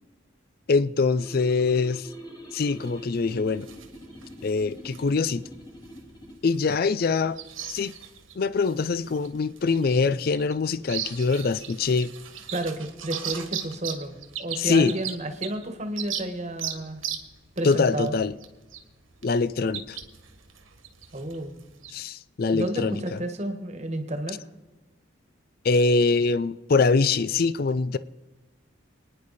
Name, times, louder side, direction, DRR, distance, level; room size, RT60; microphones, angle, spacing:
voice 1, 0.7-2.1 2.5-3.7 4.4-5.5 6.4-7.4 7.7-7.9 8.4-12.1 14.6-15.0 17.6-18.3 19.2-20.0 21.9-23.2 25.6-28.0, left 4 dB, 50° left, 0.4 m, -23 dB
sound 1, 1.2-6.4, equal, 20° left, 2.8 m, -44 dB
sound 2, 2.6-21.9, right 9 dB, 85° right, 1.6 m, -39 dB
voice 2, 12.5-17.0 17.6-18.1 21.1-21.6 22.5-24.4, right 1 dB, 35° right, 1.5 m, -31 dB
27.5 x 10.0 x 4.2 m
head